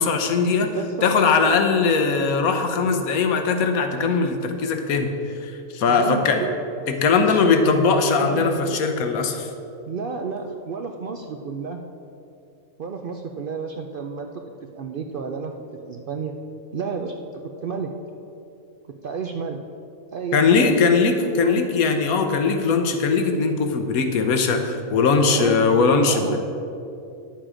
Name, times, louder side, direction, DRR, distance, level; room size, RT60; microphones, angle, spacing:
voice 1, 0.0-0.7 1.0-6.4 6.9-9.5 20.3-26.4, left 4 dB, 80° left, 6 dB, 1.3 m, -20 dB
voice 2, 0.6-1.1 5.9-8.7 9.9-11.8 12.8-14.3 14.8-15.5 15.8-16.3 16.7-17.3 17.6-17.9 19.0-19.6 20.1-20.7 21.4-21.7 25.3-25.7 25.9-26.4, right 5 dB, 65° right, 4 dB, 0.5 m, -31 dB
10.5 x 7.3 x 5.0 m, 2.7 s
omnidirectional pair, 1.5 m